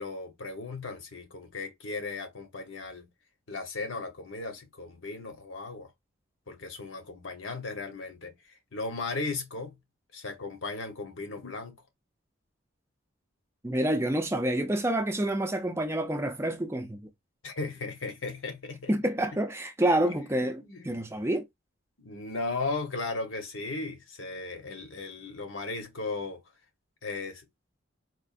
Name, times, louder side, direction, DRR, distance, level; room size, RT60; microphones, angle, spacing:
voice 1, 0.0-3.1 3.5-5.9 6.5-9.8 10.1-11.8 17.4-19.0 20.6-21.0 22.0-26.4 27.0-27.4, left 3 dB, 75° left, 1.1 m, -36 dB
voice 2, 13.6-17.1 18.9-21.5, right 1 dB, 15° right, 0.4 m, -28 dB
4.3 x 2.5 x 2.5 m
head